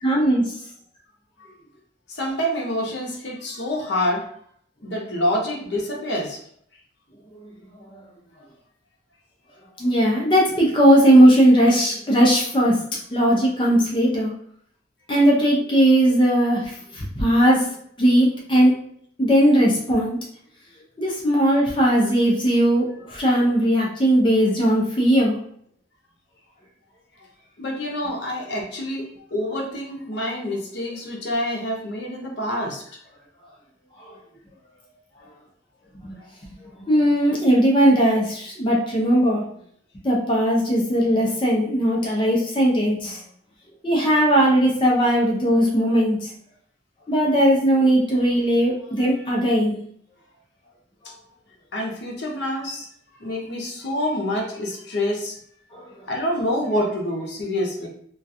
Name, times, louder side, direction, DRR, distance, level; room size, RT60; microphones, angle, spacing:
voice 1, 0.0-0.4 9.8-12.7 13.1-14.3 15.1-16.6 17.0-17.6 18.0-18.7 19.2-20.2 21.0-22.8 23.1-25.4 36.1-36.2 36.9-39.4 40.0-43.2 43.8-46.2 47.1-49.8, equal, 25° left, -3 dB, 0.5 m, -18 dB
voice 2, 2.1-4.3 4.8-6.4 27.6-32.8 51.7-52.9 53.2-55.4 56.1-57.9, left 1 dB, 70° left, -1 dB, 0.7 m, -27 dB
2.3 x 2.2 x 2.6 m, 0.66 s
head